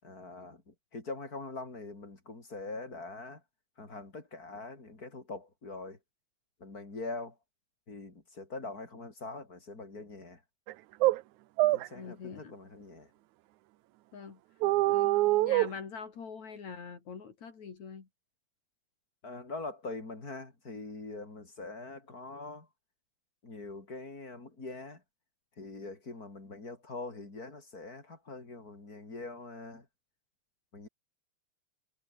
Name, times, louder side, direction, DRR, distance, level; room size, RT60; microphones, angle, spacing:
voice 1, 0.0-3.4 3.8-6.0 6.6-7.4 7.9-10.4 11.7-13.1 19.2-22.7 23.4-25.0 25.6-29.9 30.7-30.9, left 3 dB, 30° left, 5.0 m, -43 dB
sound 1, 10.7-10.8 11.0-11.2 11.6-11.9 14.6-15.7, right 17 dB, 90° right, 2.2 m, -25 dB
voice 2, 11.9-12.5 14.1-14.4 14.9-18.1, left 5 dB, 70° left, 4.8 m, -44 dB
omnidirectional pair, 3.3 m